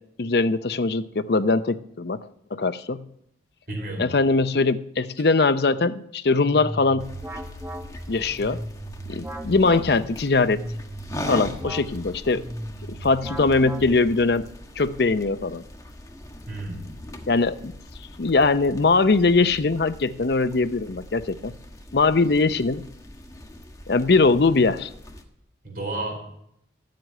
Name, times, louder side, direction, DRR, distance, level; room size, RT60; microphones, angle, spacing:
voice 1, 0.2-2.2 2.5-3.0 4.0-7.1 8.1-8.6 9.1-10.6 11.3-12.4 12.9-14.5 14.8-15.6 17.3-17.7 18.2-21.5 21.9-22.9 23.9-24.9, left 3 dB, 65° left, 13 dB, 0.6 m, -21 dB
voice 2, 3.7-4.1 16.5-16.9 25.6-26.2, right 2 dB, 50° right, 1 dB, 4.3 m, -31 dB
sound 1, 6.3-14.3, right 1 dB, 15° right, 0.9 m, -36 dB
sound 2, 7.0-25.2, left 1 dB, 20° left, 1.3 m, -41 dB
13.5 x 7.7 x 9.0 m, 0.77 s
head